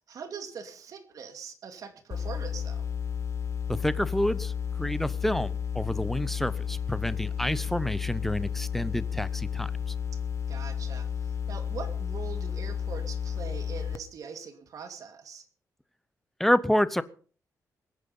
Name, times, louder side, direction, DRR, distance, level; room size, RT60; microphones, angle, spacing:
voice 1, 0.0-2.9 10.5-15.4, right 6 dB, 60° right, 8 dB, 2.4 m, -42 dB
sound 1, 2.1-14.0, left 8 dB, 45° left, 1.1 m, -32 dB
voice 2, 3.7-4.5 4.8-9.7 16.4-17.0, equal, 5° left, 16 dB, 0.8 m, -28 dB
21.5 x 9.9 x 5.6 m, 0.42 s
wide cardioid pair, 150°, 6 cm